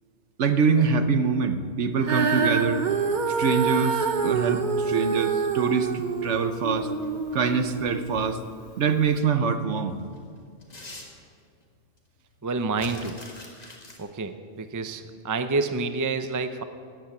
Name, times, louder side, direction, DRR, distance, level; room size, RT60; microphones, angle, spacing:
voice 1, 0.4-2.8 3.4-6.9 7.3-8.4 8.8-10.0, right 5 dB, 65° right, 9 dB, 1.1 m, -24 dB
Female singing, 2.0-8.4 9.1-9.2, right 5 dB, 40° right, 0.9 m, -27 dB
sound 1, 4.2-5.0 6.7-7.4 7.9-8.0 9.3-9.4 9.7-11.6 12.0-12.1 12.3-14.0, left 2 dB, 30° left, 2.0 m, -45 dB
voice 2, 12.4-13.2 14.0-16.6, right 3 dB, 20° right, 9 dB, 0.5 m, -28 dB
14.5 x 8.9 x 8.9 m, 2.2 s
omnidirectional pair, 1.3 m